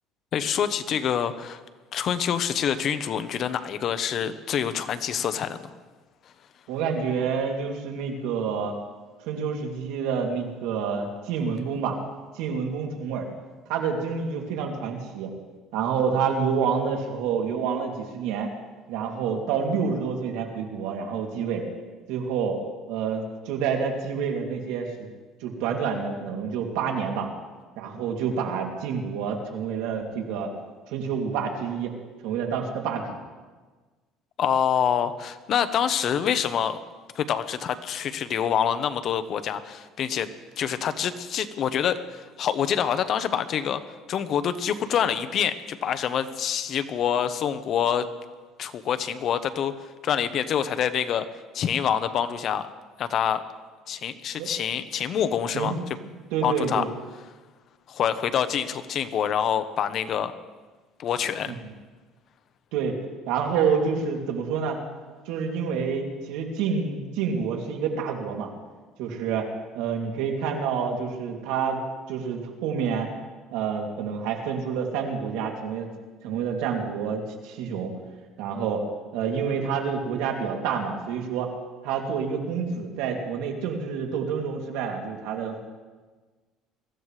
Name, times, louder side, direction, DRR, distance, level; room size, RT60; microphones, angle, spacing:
voice 1, 0.3-1.6 1.9-5.7 34.4-36.8 37.1-40.3 40.6-43.8 44.1-48.1 48.6-49.7 50.0-51.2 51.5-52.7 53.0-53.4 53.9-55.7 56.4-56.8 57.9-60.3 61.0-61.5, left 8 dB, 45° left, 10 dB, 0.9 m, -26 dB
voice 2, 6.7-8.7 9.3-12.0 12.3-13.3 13.7-15.3 15.7-18.5 18.9-21.6 22.1-22.6 22.9-25.1 25.4-27.3 27.8-30.5 30.9-32.0 32.2-33.2 54.4-54.5 55.5-56.9 61.5-61.6 62.7-63.0 63.3-64.8 65.3-68.5 69.0-69.5 69.7-71.8 72.1-73.1 73.5-75.9 76.2-77.9 78.4-78.8 79.1-81.5 81.8-85.6, right 6 dB, 80° right, 1 dB, 2.7 m, -28 dB
23.0 x 15.0 x 3.3 m, 1.3 s
cardioid pair, 130°, 0 cm